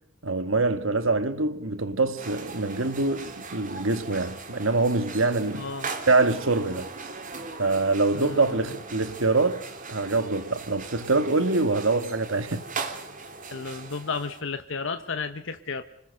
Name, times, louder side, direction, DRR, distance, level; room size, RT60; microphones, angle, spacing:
voice 1, 0.2-5.7 6.1-6.9 7.6-12.6, right 3 dB, 70° right, 1.8 m, -25 dB
sound 1, 2.2-14.4, right 4 dB, 40° right, 3.0 m, -39 dB
voice 2, 5.5-5.9 8.1-8.6 13.5-15.8, left 4 dB, 65° left, 1.1 m, -33 dB
26.0 x 19.5 x 6.5 m
head